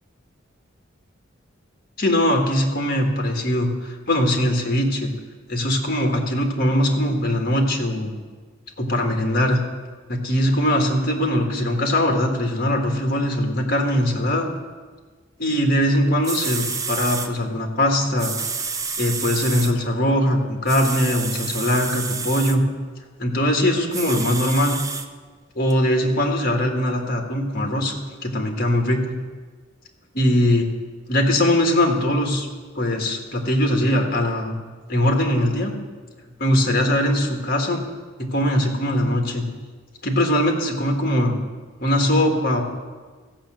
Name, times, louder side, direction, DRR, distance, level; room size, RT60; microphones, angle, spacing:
voice 1, 2.0-5.1 5.5-8.1 8.8-9.6 10.1-14.5 15.4-18.4 19.0-22.6 23.2-24.8 25.6-29.1 30.1-30.7 31.1-32.5 32.8-34.6 34.9-35.7 36.4-37.8 38.2-39.4 40.0-41.4 41.8-42.6, left 1 dB, 50° left, 2 dB, 1.8 m, -21 dB
sound 1, 15.9-16.0 16.2-17.3 18.2-19.7 20.7-22.6 23.9-25.1 25.7-25.8, right 5 dB, 15° right, 0.5 m, -29 dB
15.0 x 5.9 x 7.6 m, 1.4 s
head